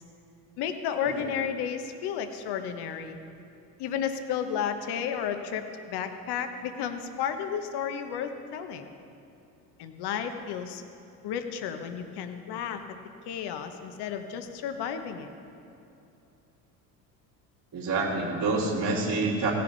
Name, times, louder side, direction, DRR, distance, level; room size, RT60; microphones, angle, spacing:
voice 1, 0.6-3.2 3.8-8.9 9.8-10.8 11.2-12.8 13.3-15.3, left 8 dB, 55° left, 7 dB, 1.1 m, -32 dB
voice 2, 17.7-19.5, right 3 dB, 50° right, -9 dB, 2.8 m, -27 dB
16.5 x 6.8 x 4.0 m, 2.7 s
hypercardioid pair, 70°, 46 cm